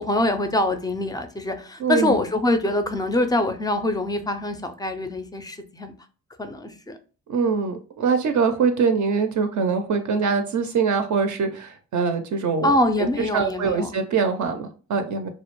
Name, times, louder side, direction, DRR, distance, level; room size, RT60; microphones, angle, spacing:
voice 1, 0.0-5.9 6.4-7.0 12.6-13.9, left 1 dB, 10° left, 8 dB, 0.4 m, -24 dB
voice 2, 1.8-2.2 7.3-12.8 13.2-15.3, right 5 dB, 55° right, 7 dB, 0.5 m, -23 dB
2.2 x 2.0 x 2.9 m, 0.37 s
supercardioid pair, 55°, 36 cm